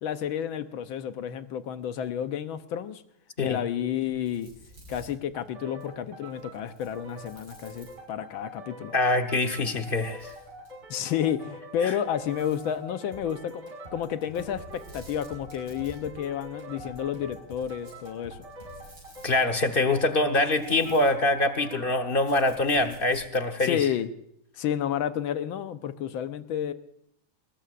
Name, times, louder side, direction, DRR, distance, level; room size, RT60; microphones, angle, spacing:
voice 1, 0.0-3.0 3.4-4.5 4.9-8.9 10.9-18.5 22.8-23.0 23.6-24.1 24.6-26.7, left 9 dB, 80° left, 10 dB, 1.6 m, -31 dB
sound 1, 3.9-8.4 9.2-10.9 12.0-12.8 14.3-23.4, right 1 dB, 60° right, 6.9 m, -54 dB
sound 2, 5.3-22.8, right 1 dB, 80° right, 3.1 m, -45 dB
voice 2, 8.9-10.3 11.8-11.9 19.2-23.8, left 2 dB, 40° left, 7 dB, 0.9 m, -24 dB
sound 3, 13.1-19.0, equal, 25° right, 4.9 m, -50 dB
22.0 x 19.5 x 2.5 m, 0.71 s
omnidirectional pair, 2.2 m